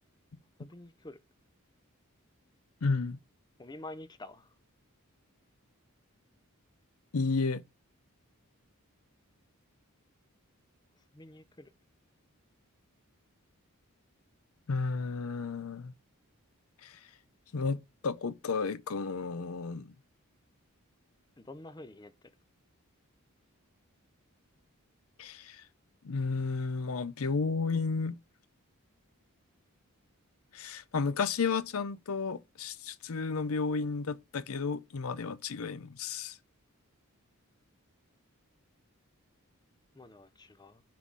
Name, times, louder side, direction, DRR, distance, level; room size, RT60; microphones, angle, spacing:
voice 1, 0.6-1.2 3.6-4.5 11.1-11.7 21.4-22.1 39.9-40.8, left 2 dB, 20° left, 0.5 m, -48 dB
voice 2, 2.8-3.2 7.1-7.6 14.7-15.9 16.8-17.0 17.5-19.9 25.2-25.6 26.0-28.1 30.5-36.4, left 4 dB, 70° left, 0.6 m, -32 dB
6.0 x 3.7 x 4.6 m
head